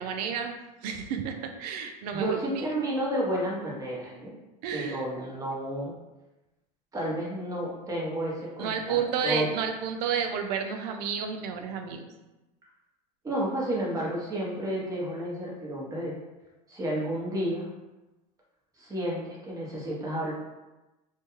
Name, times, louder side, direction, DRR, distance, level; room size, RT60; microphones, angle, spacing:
voice 1, 0.0-2.7 4.6-5.0 8.6-12.1, right 7 dB, 70° right, 5 dB, 0.4 m, -31 dB
voice 2, 2.1-4.3 4.7-5.9 6.9-9.4 13.2-16.1 16.7-17.7 18.8-20.3, right 1 dB, 15° right, -4 dB, 0.8 m, -31 dB
2.2 x 2.2 x 3.0 m, 1.0 s
supercardioid pair, 115°, 21 cm